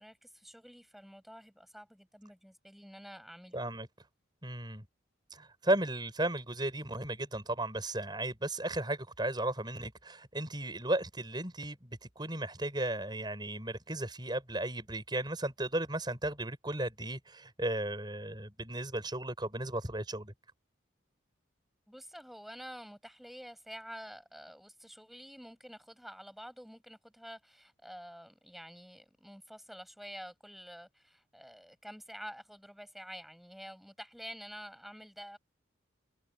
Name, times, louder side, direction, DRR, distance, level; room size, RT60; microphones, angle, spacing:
voice 1, 0.0-3.6 21.9-35.4, equal, ahead, 7.5 m, -49 dB
voice 2, 3.5-3.9 4.4-4.8 5.3-20.3, right 1 dB, 20° right, 6.7 m, -35 dB
head